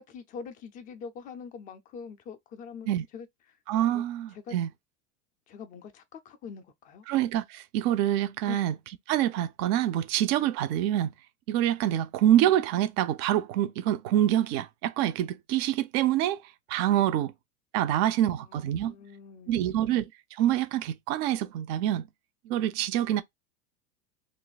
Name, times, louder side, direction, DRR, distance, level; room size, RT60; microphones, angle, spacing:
voice 1, 0.0-2.9 3.1-3.3 3.9-4.0 4.3-4.5 5.5-7.0 8.5-8.6 18.5-20.0, left 6 dB, 20° left, 0.3 m, -44 dB
voice 2, 3.7-4.7 7.1-8.7 9.1-11.1 11.5-16.4 16.7-17.3 17.7-18.9 19.5-20.1 20.4-22.1 22.5-23.2, right 12 dB, 40° right, 0.4 m, -26 dB
2.6 x 2.5 x 4.0 m
supercardioid pair, 130°, 44 cm